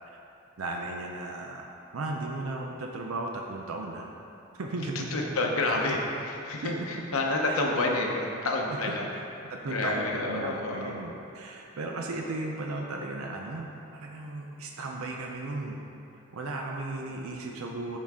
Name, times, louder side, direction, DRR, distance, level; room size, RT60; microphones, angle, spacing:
voice 1, 0.6-1.6 1.9-4.0 4.6-5.1 6.6-6.7 7.5-7.6 8.7-9.0 9.5-15.8 16.3-18.0, right 2 dB, 90° right, 1 dB, 0.6 m, -35 dB
voice 2, 5.1-9.1 9.7-10.9, left 2 dB, 90° left, 0 dB, 0.9 m, -29 dB
10.5 x 3.9 x 3.6 m, 2.9 s
head